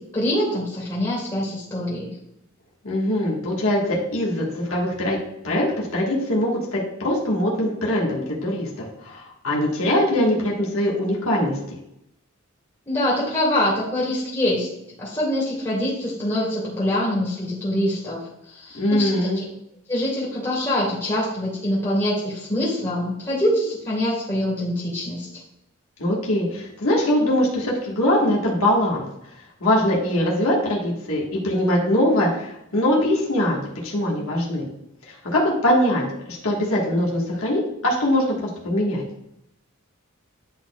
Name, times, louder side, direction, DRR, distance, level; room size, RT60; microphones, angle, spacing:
voice 1, 0.1-2.1 12.9-14.7 15.0-19.4 19.9-25.3, left 1 dB, 20° left, -7 dB, 1.8 m, -24 dB
voice 2, 2.8-5.2 5.4-11.5 18.7-19.4 26.0-29.0 29.6-34.7 35.1-39.0, left 1 dB, 75° left, -3 dB, 1.5 m, -22 dB
10.0 x 4.1 x 2.3 m, 0.81 s
head